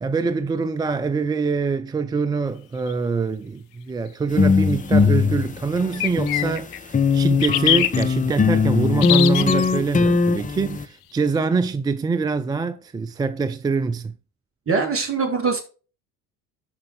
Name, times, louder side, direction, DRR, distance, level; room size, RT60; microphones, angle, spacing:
voice 1, 0.0-14.1, right 4 dB, 10° right, 0.3 m, -24 dB
sound 1, 2.9-3.0 5.9-6.8 7.4-8.0 9.0-9.8, left 13 dB, 65° left, 0.9 m, -22 dB
sound 2, 4.3-6.6 6.9-10.9, left 4 dB, 15° left, 0.8 m, -20 dB
voice 2, 14.7-15.6, right 4 dB, 30° right, 3.6 m, -22 dB
13.0 x 5.2 x 3.5 m
figure-of-eight pair, 60°, 46 cm